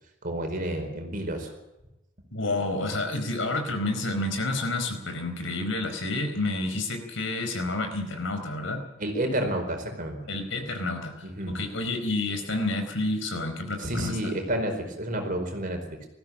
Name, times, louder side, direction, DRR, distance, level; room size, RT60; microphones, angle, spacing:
voice 1, 0.2-1.5 9.0-10.3 11.2-11.5 13.8-16.1, right 1 dB, 40° right, 4 dB, 4.7 m, -30 dB
voice 2, 2.3-8.8 10.3-14.3, left 2 dB, 70° left, 6 dB, 4.5 m, -29 dB
20.5 x 15.0 x 8.7 m, 0.94 s
head